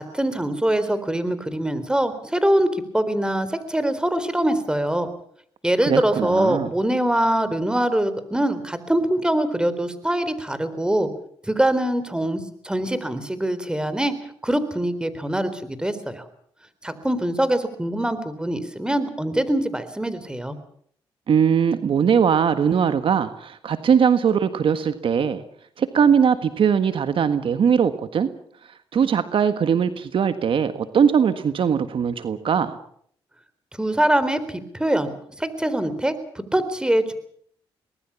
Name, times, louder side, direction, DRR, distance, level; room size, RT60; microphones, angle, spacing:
voice 1, 0.0-5.1 5.6-11.1 11.5-14.1 14.4-16.2 16.8-20.6 33.8-35.1 35.4-37.1, right 1 dB, 10° right, 12 dB, 4.0 m, -23 dB
voice 2, 5.9-6.7 21.3-25.4 25.8-28.3 28.9-32.8, right 7 dB, 60° right, 11 dB, 1.6 m, -20 dB
23.5 x 20.0 x 7.2 m, 0.65 s
supercardioid pair, 65°, 10 cm